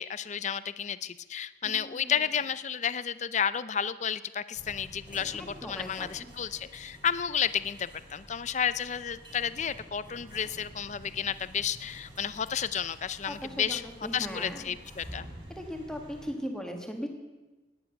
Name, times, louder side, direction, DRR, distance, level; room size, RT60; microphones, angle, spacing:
voice 1, 0.0-13.8 14.1-15.3, left 8 dB, 40° left, 15 dB, 0.5 m, -32 dB
voice 2, 1.6-2.1 5.3-6.3 13.3-14.7 15.5-17.1, equal, 5° left, 3 dB, 1.6 m, -39 dB
sound 1, 4.5-16.3, equal, 25° right, 3.4 m, -49 dB
17.5 x 10.0 x 6.6 m, 1.2 s
head